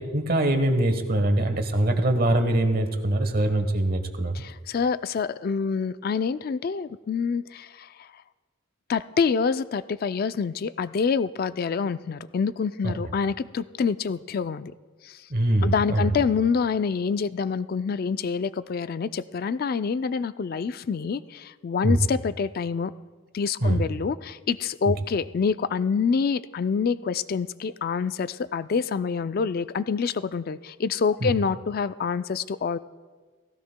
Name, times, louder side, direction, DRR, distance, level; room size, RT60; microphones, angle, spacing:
voice 1, 0.0-4.3 12.8-13.0 15.3-16.2 21.8-22.0 23.6-23.8 24.9-25.0 31.2-31.3, right 1 dB, 45° right, 7 dB, 1.1 m, -23 dB
voice 2, 4.3-8.1 8.9-14.7 15.0-15.2 15.6-22.9 23.3-32.8, left 5 dB, 45° left, 14 dB, 0.3 m, -26 dB
17.5 x 16.0 x 2.2 m, 1.4 s
head